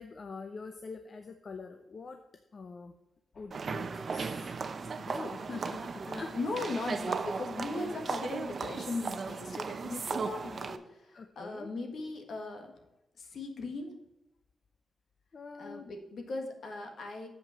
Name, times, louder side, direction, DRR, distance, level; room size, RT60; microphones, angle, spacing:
voice 1, 0.0-2.2 2.5-2.9 3.3-4.5 4.8-6.3 11.1-11.7 15.3-15.9, left 4 dB, 45° left, 6 dB, 0.6 m, -44 dB
sound 1, 3.5-10.8, right 5 dB, 50° right, 0.7 m, -36 dB
voice 2, 6.1-12.7 13.2-13.9 15.6-17.3, left 3 dB, 65° left, 4 dB, 1.7 m, -38 dB
7.6 x 5.6 x 5.7 m, 0.95 s
cardioid pair, 105°, 0 cm